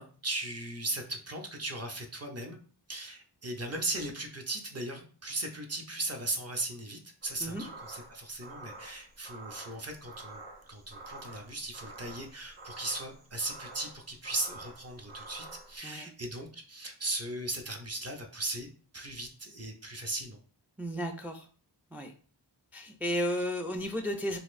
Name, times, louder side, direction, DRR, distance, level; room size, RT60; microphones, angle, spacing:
voice 1, 0.0-2.6 2.9-10.4 10.7-18.7 18.9-20.4, right 2 dB, 35° right, 3 dB, 0.6 m, -37 dB
sound 1, 7.2-15.8, right 2 dB, 80° right, 1.0 m, -48 dB
voice 2, 20.8-21.5 21.9-22.1 22.7-24.4, equal, 5° right, 5 dB, 0.3 m, -33 dB
4.0 x 2.5 x 2.5 m, 0.41 s
wide cardioid pair, 80°, 41 cm